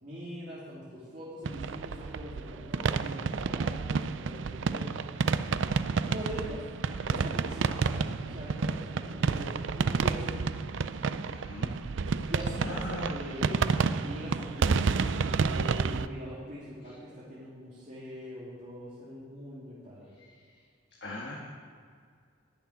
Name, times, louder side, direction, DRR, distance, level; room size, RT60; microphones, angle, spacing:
voice 1, 0.0-4.9 6.1-6.6 7.0-10.6 12.3-20.1, equal, 40° right, -9 dB, 2.8 m, -42 dB
sound 1, 1.5-16.1, right 5 dB, 75° right, 0.4 m, -30 dB
voice 2, 11.3-11.7 12.6-13.2 20.2-20.3 21.0-21.4, left 1 dB, 60° left, -3 dB, 1.7 m, -39 dB
11.5 x 6.9 x 9.4 m, 2.1 s
head